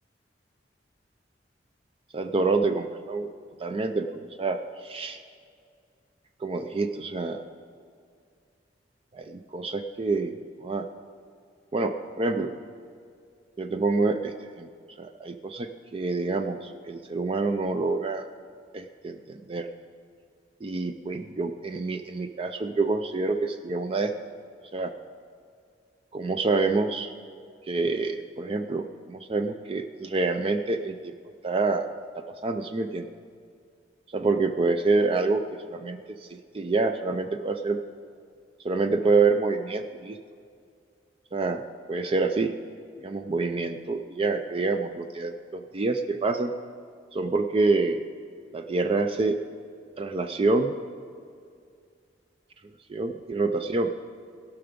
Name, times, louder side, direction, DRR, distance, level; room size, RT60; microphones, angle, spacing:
voice 1, 2.1-3.3 3.6-5.2 6.4-7.4 9.1-10.3 10.6-10.9 11.7-12.5 13.6-14.7 15.0-18.2 18.7-19.7 20.6-24.1 24.7-24.9 26.1-27.1 27.7-31.1 31.4-31.9 32.4-33.1 34.1-35.4 35.7-36.3 36.5-37.8 38.6-40.2 41.3-41.6 41.9-42.5 43.0-46.5 47.1-48.0 48.5-49.4 50.0-50.7 52.9-53.9, right 3 dB, 30° right, 7 dB, 0.4 m, -27 dB
17.0 x 5.9 x 5.1 m, 2.2 s
head